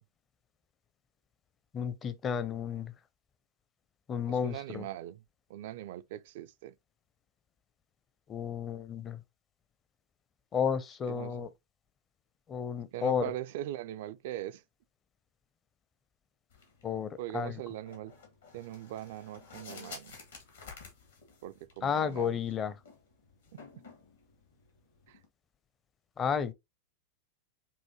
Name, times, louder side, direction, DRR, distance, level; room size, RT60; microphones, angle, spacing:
voice 1, 1.7-2.9 4.1-4.9 8.3-9.2 10.5-11.5 12.5-13.3 16.8-17.6 21.8-22.8 26.2-26.5, left 7 dB, 25° left, 0.5 m, -32 dB
voice 2, 4.3-5.2 5.5-6.7 11.1-11.5 12.9-14.6 17.2-18.1 18.5-20.1 21.4-22.4 23.5-23.6 25.1-25.2, right 13 dB, 50° right, 0.3 m, -41 dB
sound 1, 16.5-25.3, left 4 dB, 70° left, 1.6 m, -53 dB
5.6 x 2.6 x 2.9 m
figure-of-eight pair, 90°, 0 cm